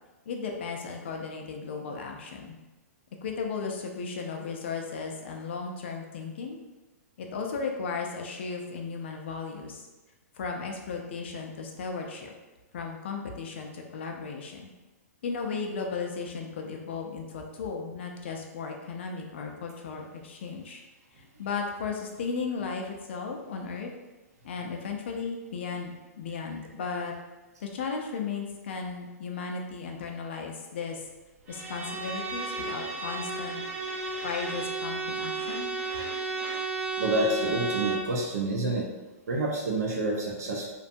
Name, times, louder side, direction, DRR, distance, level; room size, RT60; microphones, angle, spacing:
voice 1, 0.3-2.6 3.2-6.6 7.2-9.8 10.3-12.3 12.7-14.7 15.2-20.8 21.2-23.9 24.4-25.9 26.2-27.1 27.6-31.0 31.5-33.6 34.2-35.7, left 5 dB, 45° left, 2 dB, 0.4 m, -35 dB
Bowed string instrument, 31.5-38.2, right 3 dB, 55° right, 0.9 m, -33 dB
voice 2, 37.0-38.9 39.3-40.7, right 2 dB, 75° right, 0 dB, 0.6 m, -28 dB
2.6 x 2.2 x 2.6 m, 1.1 s
hypercardioid pair, 175°, 9 cm